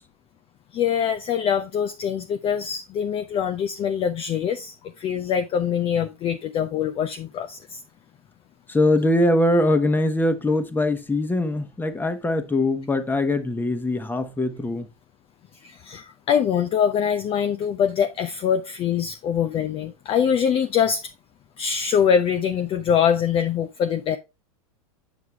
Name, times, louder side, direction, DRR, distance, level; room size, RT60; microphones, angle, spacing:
voice 1, 0.7-7.8 15.6-21.1 21.6-24.2, left 8 dB, 30° left, 0.5 m, -24 dB
voice 2, 8.7-14.9, left 1 dB, 10° left, 1.1 m, -22 dB
8.0 x 4.7 x 3.4 m
hypercardioid pair, 105°, 18 cm